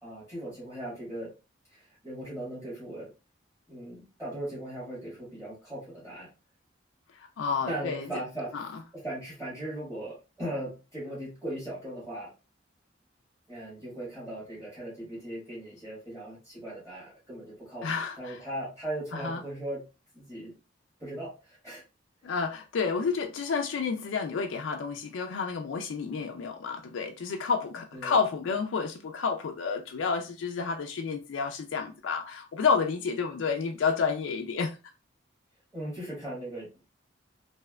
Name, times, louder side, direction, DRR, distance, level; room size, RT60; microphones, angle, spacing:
voice 1, 0.0-1.3 1.7-3.1 3.7-6.3 7.7-8.5 8.9-12.3 13.5-17.9 18.2-19.8 20.1-20.5 21.0-21.8 22.3-22.5 27.9-28.2 35.7-36.9, right 1 dB, 15° right, 1.4 m, -38 dB
voice 2, 7.1-8.1 8.5-8.7 17.8-18.4 19.1-19.4 22.2-34.8, left 5 dB, 85° left, 0.4 m, -30 dB
3.2 x 2.8 x 2.3 m
head